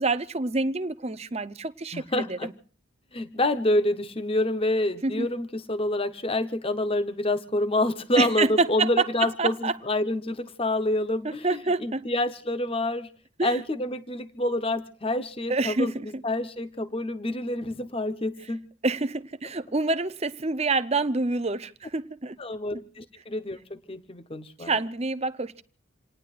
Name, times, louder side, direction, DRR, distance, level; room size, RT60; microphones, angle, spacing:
voice 1, 0.0-2.5 5.0-5.3 8.2-9.7 11.4-12.1 13.4-13.6 15.5-16.1 18.8-22.3 24.6-25.6, right 3 dB, 30° right, 0.7 m, -27 dB
voice 2, 1.9-2.5 3.1-13.1 13.4-15.9 16.2-18.6 22.4-24.8, left 1 dB, 25° left, 1.0 m, -27 dB
28.0 x 19.0 x 2.5 m
head